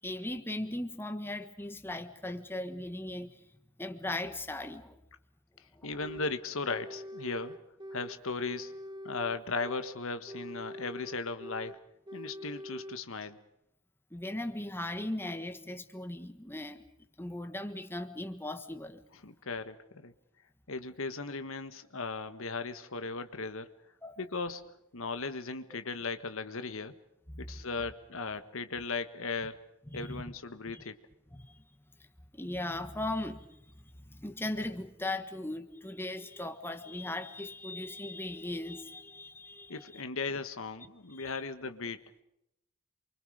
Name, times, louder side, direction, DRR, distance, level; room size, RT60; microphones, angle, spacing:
voice 1, 0.0-3.4 3.8-5.0 5.7-5.9 14.1-16.8 17.2-19.0 24.0-24.2 27.3-27.5 29.9-30.2 30.7-30.8 31.3-31.6 32.3-33.6 34.1-40.0 41.1-41.4, left 1 dB, 10° left, 8 dB, 1.4 m, -38 dB
voice 2, 5.8-7.6 7.9-8.7 9.0-11.8 12.1-13.4 19.2-20.1 20.7-23.7 24.2-24.6 24.9-26.9 27.4-29.6 29.9-31.0 39.7-42.0, left 4 dB, 70° left, 10 dB, 1.5 m, -37 dB
sound 1, 6.0-6.4 6.7-8.2 8.5-10.0 10.3-11.8 12.1-13.0, equal, 20° right, 1.5 m, -44 dB
28.5 x 24.5 x 5.1 m, 0.80 s
head